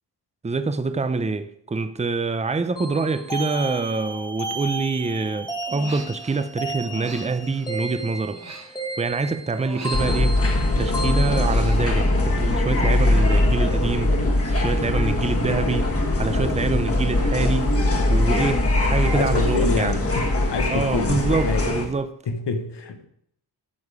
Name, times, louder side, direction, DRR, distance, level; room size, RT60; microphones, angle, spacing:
voice 1, 0.4-8.6 9.0-10.4 10.8-14.1 14.4-15.9 16.2-17.8 18.1-20.0 20.7-22.1, right 4 dB, 15° right, 0.5 m, -25 dB
sound 1, 2.8-11.5, right 1 dB, 10° left, 1.3 m, -33 dB
Human voice, 5.6-6.5 6.8-9.2 9.5-10.8 11.1-12.9 13.2-13.6, right 3 dB, 40° right, 1.6 m, -42 dB
sound 2, 9.9-21.8, left 2 dB, 35° left, 1.5 m, -21 dB
voice 2, 19.1-21.7 22.3-23.1, left 4 dB, 85° left, 1.2 m, -27 dB
12.5 x 7.0 x 4.9 m
wide cardioid pair, 170°, 41 cm